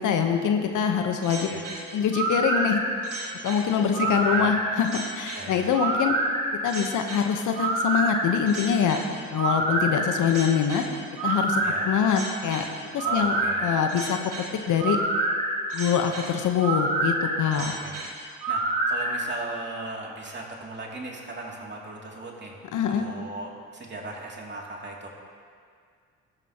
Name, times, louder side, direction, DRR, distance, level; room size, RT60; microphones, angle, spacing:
voice 1, 0.0-1.5 1.9-2.8 3.4-6.1 6.6-9.0 9.3-10.8 11.2-12.6 12.9-13.4 13.6-14.2 14.7-15.0 15.7-17.7 22.7-23.1, left 7 dB, 65° left, 5 dB, 1.2 m, -24 dB
sound 1, 1.2-19.1, right 2 dB, 70° right, 3.0 m, -27 dB
voice 2, 4.0-4.6 5.3-5.7 11.6-11.9 13.0-13.7 17.5-22.6 22.9-25.1, right 2 dB, 35° right, -2 dB, 2.8 m, -38 dB
16.0 x 13.0 x 3.0 m, 2.1 s
supercardioid pair, 55°, 32 cm